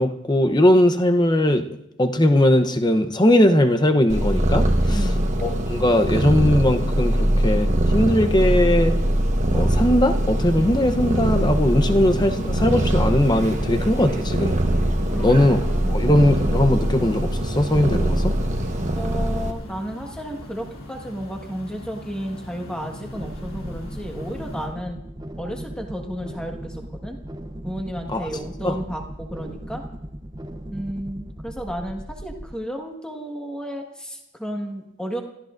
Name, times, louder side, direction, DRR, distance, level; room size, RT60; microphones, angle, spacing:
voice 1, 0.0-1.7 2.0-5.1 5.4-9.0 9.5-14.6 15.2-15.6 15.9-18.4 28.1-28.3 28.6-28.7, left 1 dB, 20° left, 8 dB, 0.8 m, -19 dB
Purr, 4.1-19.5, right 1 dB, 35° right, 1.2 m, -22 dB
voice 2, 4.9-5.3 15.1-16.1 18.9-25.0 25.4-27.2 27.6-29.8 30.7-35.2, equal, 5° left, 2 dB, 1.6 m, -33 dB
sound 1, 9.5-24.7, left 1 dB, 75° left, 3.1 m, -37 dB
sound 2, 23.1-32.5, right 1 dB, 20° right, 0.7 m, -37 dB
29.5 x 14.5 x 2.6 m, 0.85 s
head